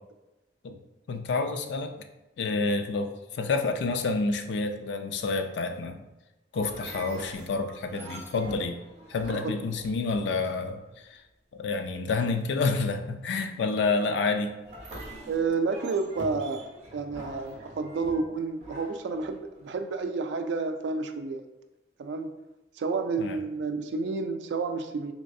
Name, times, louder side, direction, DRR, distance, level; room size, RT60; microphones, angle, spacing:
voice 1, 1.1-2.0 2.4-6.0 6.5-8.8 9.1-10.8 11.5-14.5 23.2-23.4, left 3 dB, 75° left, 7 dB, 0.3 m, -28 dB
sound 1, 6.5-10.8 14.6-19.7, right 1 dB, 35° right, 0.8 m, -45 dB
voice 2, 15.3-16.6 16.9-21.4 22.0-22.3 22.8-25.1, right 4 dB, 75° right, 8 dB, 0.3 m, -30 dB
3.2 x 3.1 x 2.6 m, 1.0 s
head